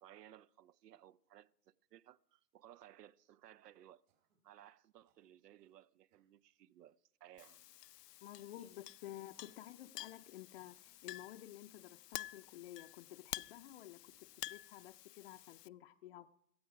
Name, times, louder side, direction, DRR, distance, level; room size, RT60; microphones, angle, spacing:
voice 1, 0.0-4.0 4.4-7.7, right 12 dB, 80° right, 0.7 m, -60 dB
Cough, 4.1-4.5 5.1-5.8 6.1-6.3 7.1-8.2 9.2-9.8 10.5-11.1 12.1-12.9 14.1-14.6, right 7 dB, 50° right, 3.4 m, -82 dB
Chink clink, 7.4-15.7, left 15 dB, 85° left, 0.6 m, -51 dB
voice 2, 8.2-16.3, left 13 dB, 40° left, 0.5 m, -52 dB
17.5 x 14.0 x 4.8 m
hypercardioid pair, 150°, 48 cm